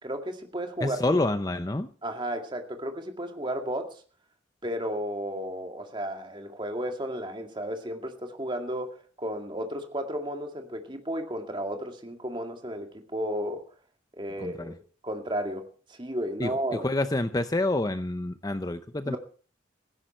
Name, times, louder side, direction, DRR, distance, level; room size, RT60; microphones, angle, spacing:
voice 1, 0.0-1.0 2.0-4.0 4.6-13.6 14.2-14.8 15.0-16.9 19.1-19.2, equal, 25° right, 5 dB, 2.2 m, -33 dB
voice 2, 0.8-1.9 14.4-14.7 16.4-19.2, left 2 dB, 20° left, 11 dB, 0.6 m, -28 dB
16.5 x 15.5 x 4.4 m, 0.40 s
head